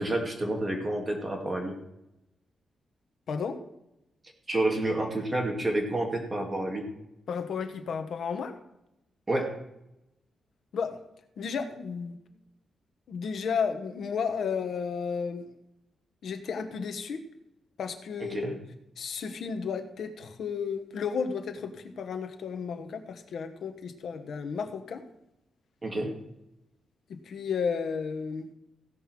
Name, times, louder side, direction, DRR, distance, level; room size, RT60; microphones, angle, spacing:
voice 1, 0.0-1.7 4.5-6.9 9.3-9.6 18.2-18.6 25.8-26.1, right 1 dB, 20° right, 2 dB, 2.2 m, -29 dB
voice 2, 3.3-3.6 7.3-8.6 10.7-11.0 11.4-12.4 13.1-15.5 16.2-17.2 17.8-18.6 19.0-25.0 27.1-28.5, left 6 dB, 65° left, 8 dB, 1.2 m, -33 dB
16.0 x 5.6 x 6.1 m, 0.86 s
wide cardioid pair, 140°, 0 cm